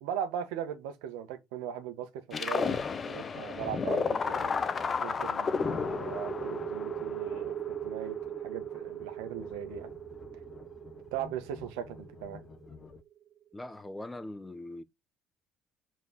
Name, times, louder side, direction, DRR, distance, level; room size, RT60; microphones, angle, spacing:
voice 1, 0.0-2.8 3.1-4.5 5.0-7.6 7.8-9.9 11.1-12.4, right 9 dB, 85° right, 1.6 m, -39 dB
sound 1, 2.3-13.0, left 5 dB, 35° left, 1.0 m, -34 dB
sound 2, 5.8-13.1, right 11 dB, 70° right, 1.2 m, -39 dB
voice 2, 13.5-14.8, left 1 dB, 15° left, 1.0 m, -41 dB
5.4 x 4.6 x 6.3 m
supercardioid pair, 75°, 0 cm